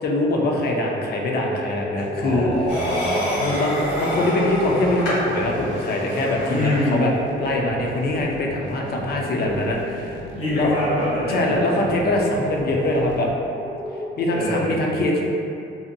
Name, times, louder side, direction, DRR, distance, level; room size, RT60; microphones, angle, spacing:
voice 1, 0.0-2.5 3.4-7.1 7.4-10.2 10.5-10.7 11.3-13.3 14.2-15.2, left 1 dB, 55° left, 0 dB, 0.5 m, -23 dB
sound 1, 0.7-14.5, equal, 10° right, 0.5 m, -34 dB
sound 2, 2.0-13.3, right 1 dB, 70° right, 0.4 m, -40 dB
voice 2, 2.2-3.4 6.5-7.1 9.2-9.6 9.9-11.9 14.3-14.9, left 1 dB, 85° left, -11 dB, 1.5 m, -26 dB
sound 3, 2.7-7.0, equal, 70° left, 0.9 m, -29 dB
2.7 x 2.1 x 2.5 m, 2.6 s
cardioid pair, 90°, 20 cm